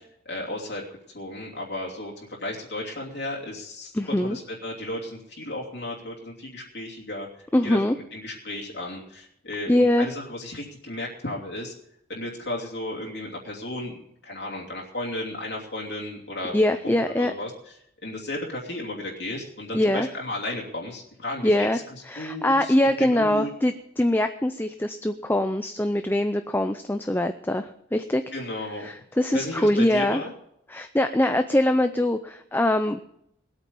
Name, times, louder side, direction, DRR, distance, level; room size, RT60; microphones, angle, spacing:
voice 1, 0.3-0.8 1.1-7.3 7.6-7.8 8.1-11.7 12.1-14.0 14.2-17.5 18.0-21.8 22.2-22.7 23.2-23.5 28.3-28.9 29.3-30.3, left 1 dB, 65° left, -3 dB, 2.8 m, -34 dB
voice 2, 3.9-4.4 7.5-8.0 9.7-10.1 16.5-17.3 19.7-20.1 21.4-21.8 22.1-28.2 28.8-30.2 30.7-33.0, left 1 dB, 10° left, 8 dB, 0.5 m, -23 dB
20.0 x 8.7 x 5.4 m, 0.75 s
head